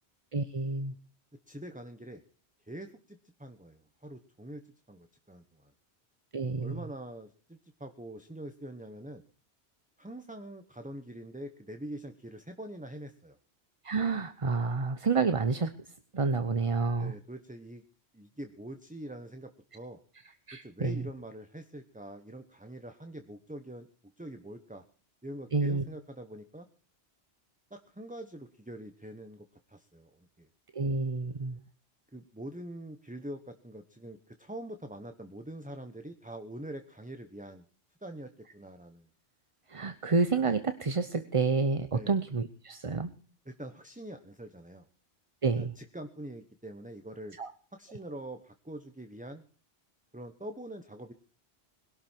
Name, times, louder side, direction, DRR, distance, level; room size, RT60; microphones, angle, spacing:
voice 1, 0.3-0.9 6.3-6.8 13.8-15.7 16.1-17.1 20.5-21.0 25.5-25.8 30.7-31.6 39.7-43.1 45.4-45.7 47.4-47.5, right 4 dB, 35° right, 10 dB, 0.8 m, -29 dB
voice 2, 1.5-2.2 2.6-4.6 4.9-5.7 6.6-9.2 10.0-13.4 16.9-17.8 18.1-20.0 20.6-23.9 24.2-24.8 25.2-26.7 27.7-30.5 32.1-37.7 38.0-39.1 41.9-42.2 43.5-44.9 45.6-47.4 47.7-49.4 50.1-51.1, right 1 dB, 10° right, 7 dB, 1.0 m, -44 dB
21.0 x 12.0 x 4.5 m, 0.43 s
omnidirectional pair, 1.1 m